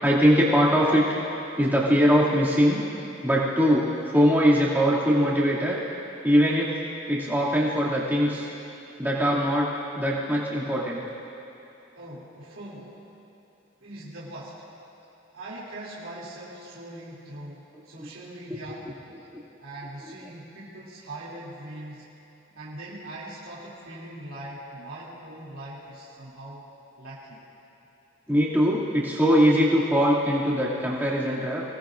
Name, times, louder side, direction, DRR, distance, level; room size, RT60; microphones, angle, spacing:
voice 1, 0.0-1.0 1.6-2.8 3.2-5.8 6.2-6.7 7.1-8.5 9.0-9.7 9.9-11.0 18.0-18.1 18.5-18.6 19.3-19.4 28.3-31.6, equal, 10° right, -7 dB, 2.5 m, -21 dB
voice 2, 11.9-13.0 13.8-14.6 15.3-18.9 19.6-22.1 22.5-26.7 27.0-27.4, right 1 dB, 90° right, -9 dB, 3.0 m, -41 dB
25.0 x 19.0 x 2.6 m, 2.8 s
head